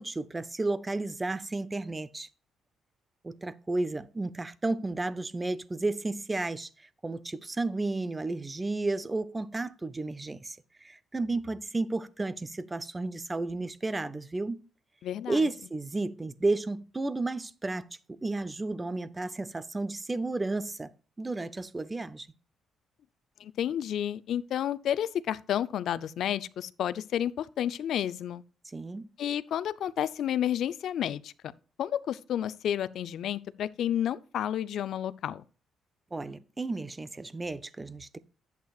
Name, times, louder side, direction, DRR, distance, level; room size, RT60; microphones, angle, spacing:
voice 1, 0.0-2.3 3.2-6.7 7.0-10.6 10.8-14.6 15.3-20.9 21.2-22.3 28.7-29.1 36.1-38.2, right 2 dB, 20° right, 0.6 m, -32 dB
voice 2, 15.0-15.5 23.4-28.4 29.2-31.3 31.8-35.4, left 10 dB, 70° left, 0.5 m, -31 dB
11.0 x 8.3 x 2.4 m
cardioid pair, 90°, 0 cm